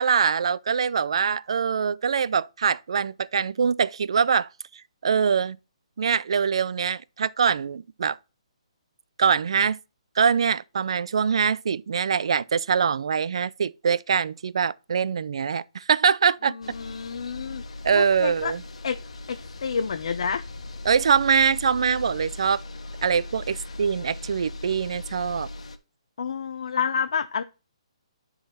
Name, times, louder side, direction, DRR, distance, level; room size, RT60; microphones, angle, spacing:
voice 1, 0.0-4.5 5.0-5.6 6.0-8.2 9.2-9.8 10.2-16.6 17.8-18.6 20.8-22.6 23.0-25.5, right 6 dB, 60° right, 0.4 m, -23 dB
voice 2, 16.5-17.6 17.9-18.5 18.8-19.0 19.3-20.4 26.2-27.4, left 6 dB, 60° left, 0.6 m, -29 dB
sound 1, 16.6-25.8, left 2 dB, 80° left, 1.2 m, -39 dB
10.5 x 4.0 x 4.2 m
hypercardioid pair, 170°, 3 cm